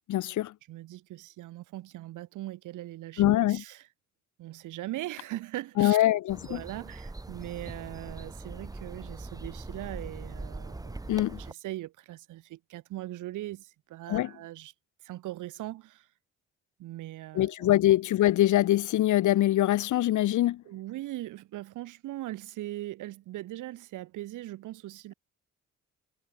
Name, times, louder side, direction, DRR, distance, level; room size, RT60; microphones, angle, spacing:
voice 1, 0.1-0.5 3.2-3.6 5.8-6.6 11.1-11.4 14.1-14.3 17.3-20.6, left 14 dB, 75° left, 1.3 m, -24 dB
voice 2, 0.7-3.8 4.4-6.0 6.5-14.7 15.0-16.1 16.8-17.8 20.7-25.1, right 15 dB, 90° right, 3.6 m, -40 dB
sound 1, 6.3-11.5, right 2 dB, 10° right, 1.4 m, -41 dB
cardioid pair, 90°, 30 cm